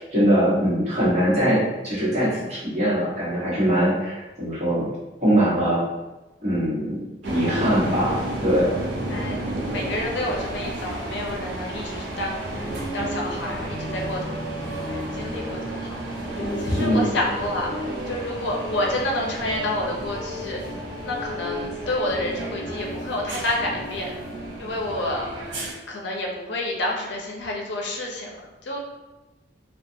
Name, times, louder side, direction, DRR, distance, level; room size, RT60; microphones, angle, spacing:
voice 1, 0.0-4.9 5.2-5.8 6.4-8.7 16.7-17.1, equal, 40° right, -9 dB, 1.1 m, -22 dB
sound 1, 7.2-25.7, right 1 dB, 85° right, 0.5 m, -33 dB
voice 2, 9.7-12.4 12.9-20.6 21.0-24.2 24.6-25.4 25.9-28.8, left 1 dB, 75° left, -1 dB, 0.5 m, -29 dB
sound 2, 12.5-15.9 16.4-17.9, equal, 30° left, 0.9 m, -34 dB
sound 3, 14.5-24.5, right 1 dB, 10° right, 1.2 m, -40 dB
2.4 x 2.3 x 2.6 m, 1.1 s
head